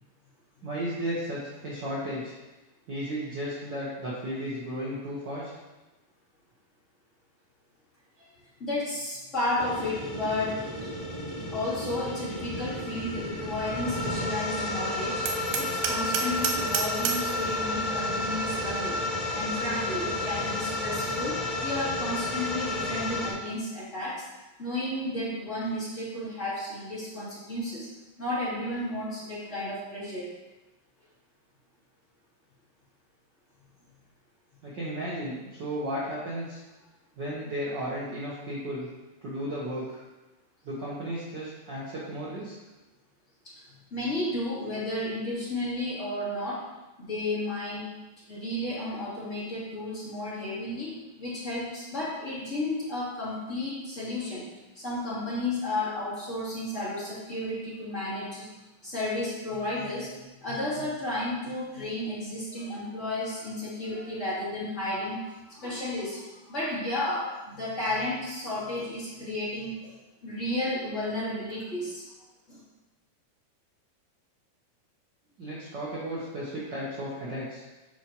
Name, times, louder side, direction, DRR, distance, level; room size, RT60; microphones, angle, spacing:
voice 1, 0.6-2.4 2.9-5.5 34.6-36.6 37.2-38.9 39.2-40.0 40.6-42.5 75.4-77.6, equal, 70° right, -7 dB, 1.0 m, -34 dB
voice 2, 8.6-10.9 11.5-15.2 15.6-19.0 19.3-24.2 24.6-27.9 28.2-30.3 43.4-43.5 43.9-46.6 47.0-47.9 48.3-50.9 51.2-54.5 54.7-58.5 58.8-60.1 60.4-70.0 70.2-72.0 72.5-72.6, left 1 dB, 25° left, -11 dB, 2.6 m, -32 dB
sound 1, 9.6-23.3, left 2 dB, 55° left, 0.4 m, -31 dB
Hammer, 15.3-17.3, right 6 dB, 85° right, 2.3 m, -30 dB
11.0 x 4.7 x 3.0 m, 1.1 s
omnidirectional pair, 4.0 m